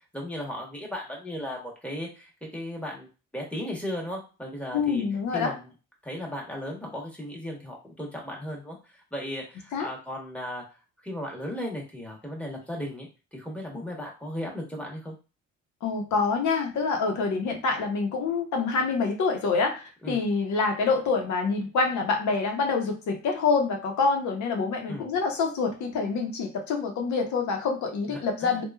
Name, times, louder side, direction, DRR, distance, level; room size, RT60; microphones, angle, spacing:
voice 1, 0.1-3.1 3.3-5.0 5.3-5.7 6.0-10.6 11.0-15.1 20.0-20.2 24.9-25.0 28.1-28.6, left 1 dB, 5° left, -2 dB, 1.0 m, -36 dB
voice 2, 4.7-5.5 9.7-9.9 15.8-28.6, left 4 dB, 70° left, 3 dB, 0.8 m, -26 dB
3.1 x 2.3 x 2.3 m, 0.32 s
cardioid pair, 90°, 30 cm